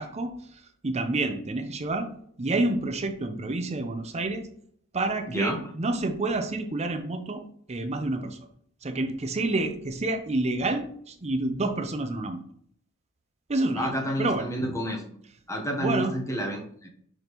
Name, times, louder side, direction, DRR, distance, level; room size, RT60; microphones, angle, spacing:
voice 1, 0.0-2.1 2.4-4.5 4.9-7.4 7.7-8.4 8.8-12.4 13.5-13.9 14.2-14.5 15.8-16.1, right 2 dB, 30° right, 7 dB, 0.7 m, -28 dB
voice 2, 5.3-5.6 13.7-15.0 15.5-16.9, equal, 15° left, 2 dB, 1.0 m, -29 dB
6.2 x 5.2 x 3.0 m, 0.63 s
head